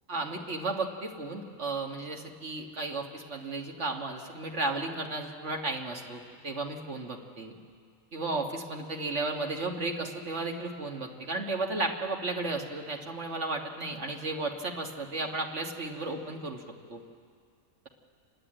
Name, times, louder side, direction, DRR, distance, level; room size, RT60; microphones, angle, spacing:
voice 1, 0.1-7.5 8.1-16.6 16.9-17.0, right 2 dB, 60° right, 2 dB, 1.9 m, -34 dB
29.5 x 11.0 x 8.9 m, 2.1 s
omnidirectional pair, 1.4 m